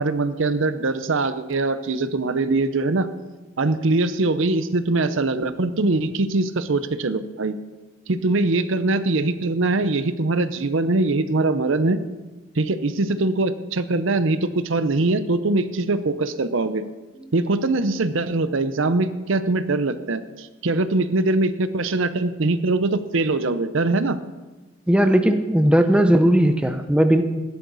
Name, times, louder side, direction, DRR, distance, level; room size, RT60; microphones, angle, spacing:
voice 1, 0.0-3.1 3.6-7.5 8.1-12.0 12.6-16.8 17.3-24.2, right 2 dB, 60° right, 12 dB, 0.7 m, -22 dB
voice 2, 24.9-27.2, right 1 dB, 5° right, 7 dB, 0.6 m, -17 dB
16.5 x 11.5 x 4.1 m, 1.2 s
head